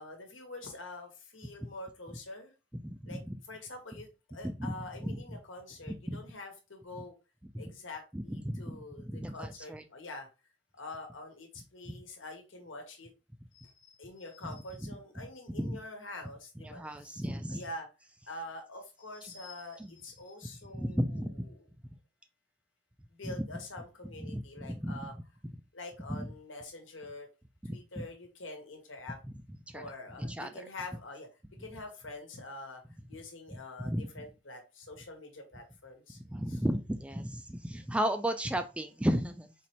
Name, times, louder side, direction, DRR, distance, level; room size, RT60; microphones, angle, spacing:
voice 1, 0.0-2.5 3.1-3.2 3.5-7.1 7.6-10.3 10.7-13.1 13.5-17.2 17.5-17.9 18.3-21.7 23.1-25.1 25.7-27.3 27.6-29.2 29.7-31.3 31.6-32.8 33.1-36.2 36.5-36.6, left 2 dB, 85° left, 3 dB, 1.2 m, -46 dB
voice 2, 2.8-3.4 4.4-4.7 5.0-5.2 6.1-6.2 7.5-7.6 8.1-9.8 11.9-12.0 14.8-14.9 15.5-15.8 16.6-17.6 19.8-19.9 20.7-21.5 23.2-23.5 24.2-25.0 26.1-26.3 27.6-28.1 29.7-29.9 30.2-30.5 33.5-33.6 33.8-34.2 36.2-39.5, equal, 5° right, 7 dB, 0.3 m, -34 dB
4.2 x 3.2 x 2.9 m, 0.29 s
head